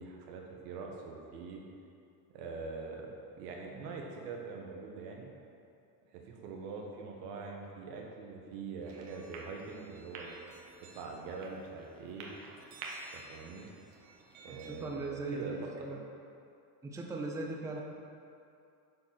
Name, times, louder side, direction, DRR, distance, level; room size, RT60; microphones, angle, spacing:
voice 1, 0.0-1.6 2.3-5.3 6.1-10.3 10.9-12.3 13.1-13.7 14.4-15.7, right 4 dB, 85° right, 0 dB, 1.7 m, -43 dB
sound 1, 8.8-14.8, right 3 dB, 65° right, 1.6 m, -50 dB
voice 2, 14.5-16.0 16.8-17.8, right 3 dB, 5° right, 0 dB, 0.5 m, -39 dB
9.6 x 4.7 x 6.0 m, 2.5 s
cardioid pair, 150°, 47 cm